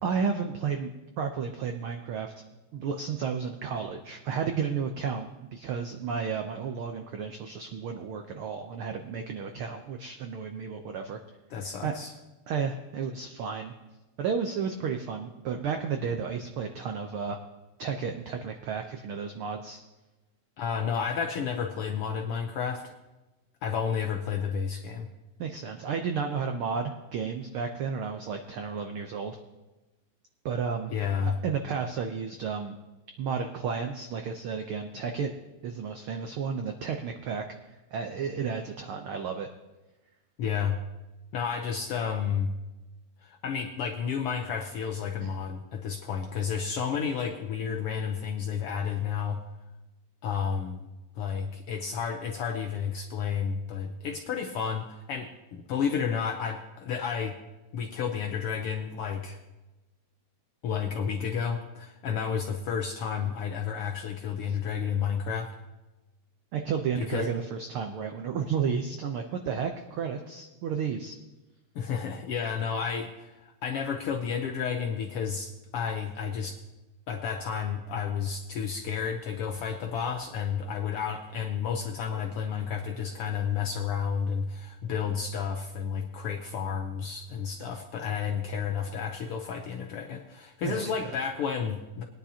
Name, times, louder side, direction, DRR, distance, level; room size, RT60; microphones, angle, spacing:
voice 1, 0.0-0.9 1.2-2.3 2.7-11.2 11.8-12.0 12.5-13.7 14.2-17.4 17.8-19.8 25.4-29.4 30.4-30.9 31.2-32.8 33.2-35.3 35.6-37.4 37.9-39.5 45.2-45.3 64.5-64.6 66.5-71.2 90.6-90.9, right 6 dB, 80° right, 5 dB, 1.2 m, -32 dB
voice 2, 11.5-12.1 20.6-22.9 23.6-25.1 30.9-31.4 40.4-40.8 41.3-42.5 43.2-49.4 50.2-50.9 51.2-57.4 57.7-59.4 60.6-65.5 67.0-67.3 71.7-76.6 77.1-92.0, left 7 dB, 75° left, 4 dB, 1.3 m, -31 dB
20.5 x 10.0 x 2.8 m, 1.1 s
omnidirectional pair, 3.3 m